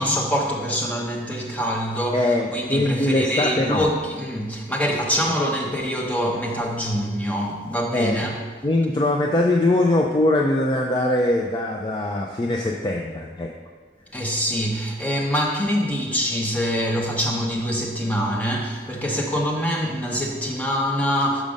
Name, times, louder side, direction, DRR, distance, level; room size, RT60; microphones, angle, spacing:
voice 1, 0.0-8.4 14.1-21.4, equal, 10° left, -2 dB, 0.9 m, -24 dB
voice 2, 2.1-3.9 7.9-8.2 8.6-13.5, left 1 dB, 25° left, 0 dB, 0.4 m, -21 dB
6.1 x 5.3 x 5.1 m, 1.5 s
head